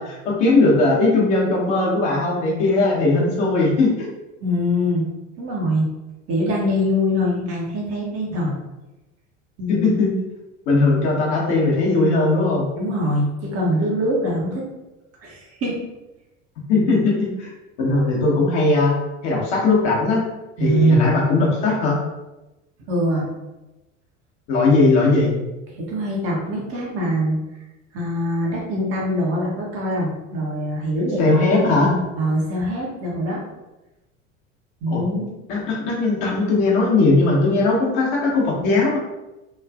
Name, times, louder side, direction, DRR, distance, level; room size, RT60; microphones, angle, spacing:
voice 1, 0.0-4.1 9.7-10.2 10.7-12.7 16.7-17.5 17.8-18.9 19.2-20.2 20.6-22.0 24.5-25.3 31.2-31.9 34.9-35.0 35.5-39.0, left 3 dB, 45° left, -4 dB, 1.0 m, -18 dB
voice 2, 4.4-5.0 5.4-5.9 6.3-8.5 9.6-9.9 12.7-14.6 15.2-15.8 20.6-21.2 22.9-23.3 25.7-27.4 27.9-31.2 31.5-33.4 34.8-35.3, equal, 35° right, -3 dB, 0.9 m, -23 dB
3.1 x 2.4 x 2.4 m, 1.0 s
figure-of-eight pair, 75°, 38 cm